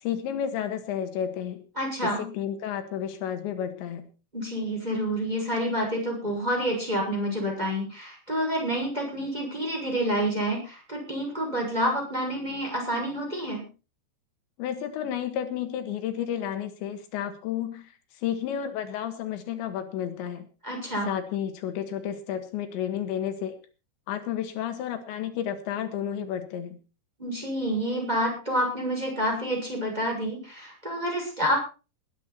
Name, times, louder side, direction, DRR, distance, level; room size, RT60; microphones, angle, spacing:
voice 1, 0.0-1.6 2.0-4.1 14.6-18.0 18.2-20.5 21.1-23.6 24.1-26.8, left 9 dB, 85° left, 7 dB, 3.9 m, -31 dB
voice 2, 1.8-2.3 4.3-13.6 20.6-21.1 27.2-31.6, equal, 10° right, 0 dB, 6.0 m, -28 dB
20.0 x 10.5 x 4.3 m, 0.33 s
omnidirectional pair, 5.1 m